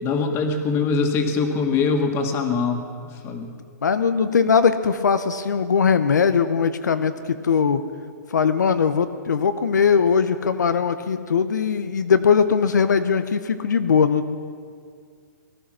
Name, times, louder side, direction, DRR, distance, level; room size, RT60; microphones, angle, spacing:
voice 1, 0.0-2.8 3.2-3.5, left 4 dB, 25° left, 4 dB, 1.8 m, -22 dB
voice 2, 3.8-7.8 8.3-14.4, left 6 dB, 85° left, 10 dB, 0.7 m, -20 dB
19.0 x 11.5 x 6.2 m, 2.2 s
hypercardioid pair, 140°, 9 cm